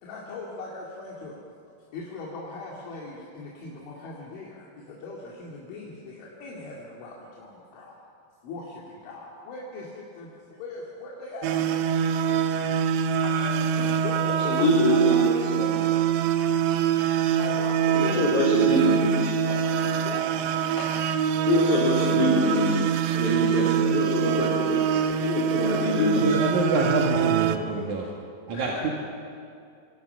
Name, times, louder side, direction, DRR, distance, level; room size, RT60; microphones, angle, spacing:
voice 1, 0.0-1.4 1.9-8.0 8.4-11.8 12.5-12.9 13.2-15.9 17.4-18.5 18.7-18.9 20.0-20.3 25.0-25.1 25.6-26.9 28.5-28.9, left 3 dB, 80° left, -4 dB, 4.9 m, -40 dB
sound 1, 11.4-27.6, right 8 dB, 80° right, 3.0 m, -24 dB
voice 2, 14.2-15.6 17.9-19.3 20.7-20.8 21.5-22.8 23.1-24.8 25.2-26.2, left 2 dB, 30° left, -7 dB, 4.7 m, -25 dB
voice 3, 26.1-28.1 28.5-28.9, right 3 dB, 50° right, -2 dB, 2.8 m, -26 dB
27.5 x 25.5 x 5.8 m, 2.4 s
omnidirectional pair, 5.4 m